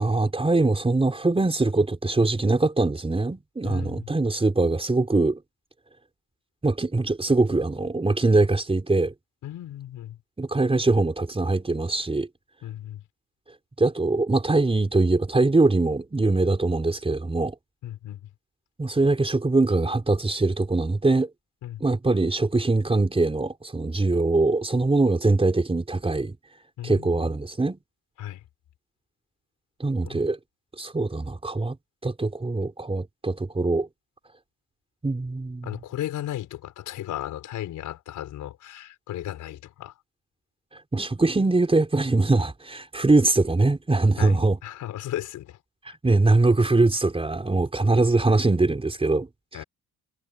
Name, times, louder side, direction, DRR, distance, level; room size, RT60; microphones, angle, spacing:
voice 1, 0.0-5.4 6.6-9.1 10.4-12.3 13.8-17.5 18.8-21.3 21.8-26.4 26.8-27.8 29.8-30.4 30.8-31.8 32.0-33.9 35.0-35.7 40.9-44.6 46.0-49.3, right 2 dB, 20° right, 4.7 m, -22 dB
voice 2, 3.6-4.1 9.4-10.2 12.6-13.0 17.8-18.3 21.6-21.8 26.8-27.2 28.2-28.4 30.0-30.2 35.6-40.0 44.2-45.6 45.9-46.0 49.5-49.6, left 12 dB, 80° left, 4.7 m, -35 dB
cardioid pair, 90°, 30 cm